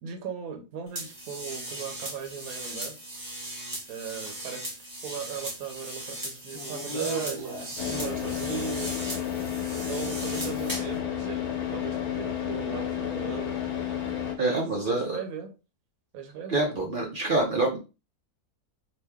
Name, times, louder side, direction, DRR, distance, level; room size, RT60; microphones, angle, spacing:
voice 1, 0.0-3.0 3.9-4.7 5.0-8.9 9.7-11.4 11.7-13.6 14.4-15.5 16.1-16.8, right 7 dB, 70° right, 4 dB, 1.2 m, -38 dB
sound 1, 0.9-11.0, right 2 dB, 15° right, 1.0 m, -37 dB
Car / Idling, 7.8-14.4, left 9 dB, 75° left, 1.2 m, -31 dB
voice 2, 14.4-15.2 16.5-17.8, right 2 dB, 50° right, 0 dB, 0.6 m, -26 dB
2.9 x 2.6 x 3.4 m, 0.30 s
omnidirectional pair, 1.7 m